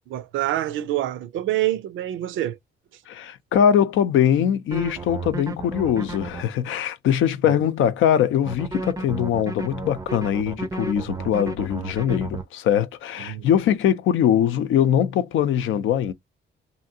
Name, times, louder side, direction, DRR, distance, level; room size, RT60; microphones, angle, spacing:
voice 1, 0.1-2.6 7.5-7.6 13.2-13.5, right 14 dB, 75° right, 0.5 m, -26 dB
voice 2, 3.1-16.1, left 9 dB, 80° left, 0.6 m, -22 dB
sound 1, 4.7-6.4 8.5-12.4, right 3 dB, 15° right, 0.4 m, -32 dB
2.8 x 2.6 x 2.7 m
cardioid pair, 90°, 20 cm